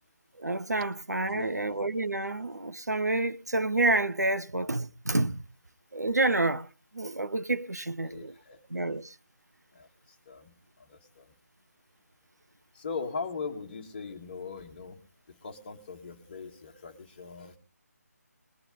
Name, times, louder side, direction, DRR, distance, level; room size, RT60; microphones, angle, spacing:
voice 1, 0.4-5.4 5.9-6.7 6.9-8.3 8.7-9.1, right 2 dB, 75° right, 0.8 m, -28 dB
voice 2, 1.2-1.6 8.1-8.6 9.8-9.9 10.3-10.5 10.9-11.3 12.8-15.0 15.4-17.6, left 4 dB, 30° left, 1.9 m, -39 dB
21.0 x 9.9 x 3.9 m
figure-of-eight pair, 155°, 9 cm